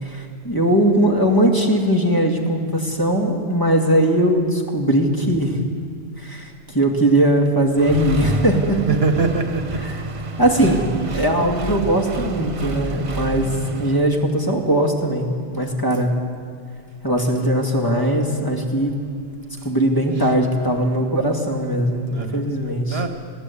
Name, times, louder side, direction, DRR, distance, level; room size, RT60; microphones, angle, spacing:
voice 1, 0.0-5.6 6.2-8.8 9.8-10.0 10.4-16.1 17.0-18.9 19.6-23.0, right 1 dB, 20° left, 1 dB, 2.0 m, -20 dB
Accelerating revving vroom, 7.8-14.0, right 3 dB, 30° right, 0.8 m, -28 dB
voice 2, 8.9-9.8 10.6-10.8 11.1-11.2 20.2-20.3 22.1-22.4 22.9-23.1, right 5 dB, 60° right, 7 dB, 1.3 m, -23 dB
20.5 x 15.0 x 8.4 m, 2.2 s
omnidirectional pair, 1.2 m